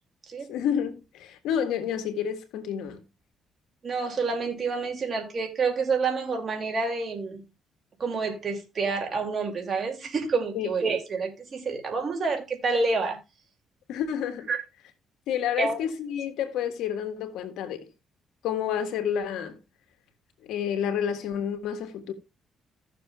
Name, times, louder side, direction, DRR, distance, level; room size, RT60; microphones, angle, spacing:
voice 1, 0.5-3.0 10.5-10.7 13.9-14.5 15.3-17.9 18.4-19.6 20.4-22.1, left 8 dB, 90° left, 1.6 m, -29 dB
voice 2, 3.8-7.5 8.0-13.2 14.5-14.6 15.6-15.8, right 4 dB, 45° right, 2.5 m, -28 dB
16.0 x 6.7 x 2.3 m
cardioid pair, 90°, 0 cm